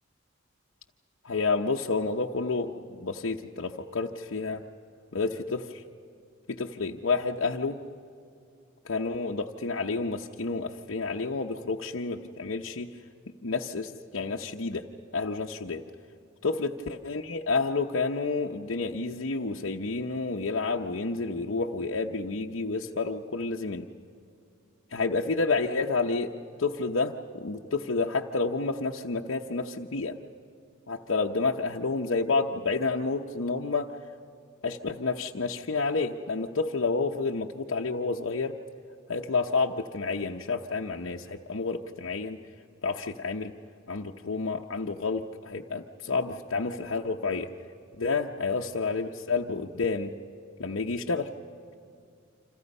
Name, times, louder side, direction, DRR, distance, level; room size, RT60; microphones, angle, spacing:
voice 1, 1.2-4.6 5.1-5.8 6.5-7.8 8.9-12.9 13.4-14.8 15.1-15.8 16.4-23.9 24.9-26.3 26.6-30.1 30.9-33.9 34.6-38.5 39.1-42.4 42.8-43.5 43.9-47.5 48.0-50.1 50.6-51.2, left 3 dB, 70° left, 0 dB, 0.8 m, -30 dB
29.0 x 26.5 x 5.4 m, 2.5 s
head